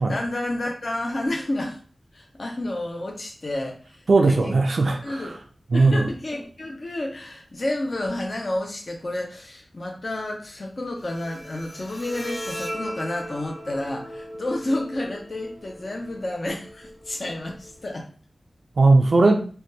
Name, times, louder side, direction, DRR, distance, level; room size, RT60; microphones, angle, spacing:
voice 1, 0.0-1.8 2.1-4.5 5.0-5.4 5.7-18.0, left 1 dB, 50° left, 0 dB, 0.5 m, -30 dB
voice 2, 4.1-5.4 5.7-6.1 18.8-19.5, right 3 dB, 70° right, 4 dB, 0.3 m, -18 dB
Bowed string instrument, 11.0-18.0, equal, 25° left, 0.8 m, -38 dB
3.2 x 2.2 x 2.7 m, 0.41 s
wide cardioid pair, 95°, 0 cm